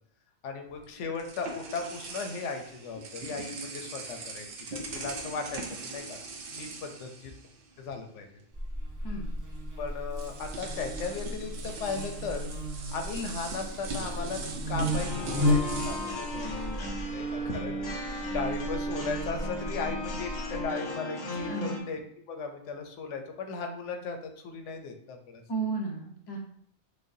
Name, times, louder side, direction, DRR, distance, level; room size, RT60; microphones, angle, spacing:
voice 1, 0.4-4.5 4.7-6.2 6.5-7.3 7.8-8.4 9.8-12.5 12.9-14.4 14.7-22.0 22.3-25.4, left 4 dB, 85° left, 5 dB, 1.0 m, -37 dB
sound 1, 0.7-7.9 8.2-8.4 9.5-9.6 10.1-17.3, right 3 dB, 60° right, 0.7 m, -41 dB
Buzz, 8.5-20.6, left 1 dB, 30° right, 0.3 m, -34 dB
sound 2, 14.9-21.8, right 1 dB, 60° left, 1.0 m, -35 dB
voice 2, 21.5-21.8 25.5-26.4, right 4 dB, 25° left, -1 dB, 0.6 m, -33 dB
6.3 x 2.2 x 2.6 m, 0.65 s
omnidirectional pair, 1.2 m